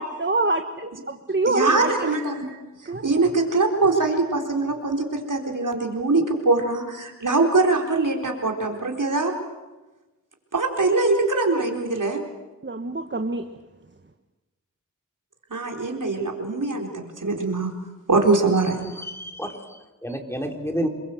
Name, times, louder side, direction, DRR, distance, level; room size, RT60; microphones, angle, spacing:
voice 1, 0.0-2.2 2.4-2.6 2.8-3.3 12.6-13.5, right 3 dB, 35° right, 7 dB, 1.4 m, -26 dB
voice 2, 1.5-2.5 3.0-9.3 10.5-12.2 15.5-17.7 18.1-18.8, right 3 dB, 65° right, 2 dB, 4.3 m, -22 dB
voice 3, 18.8-20.9, equal, 5° left, 3 dB, 3.5 m, -30 dB
28.0 x 22.5 x 7.9 m, 1.1 s
wide cardioid pair, 65°, 33 cm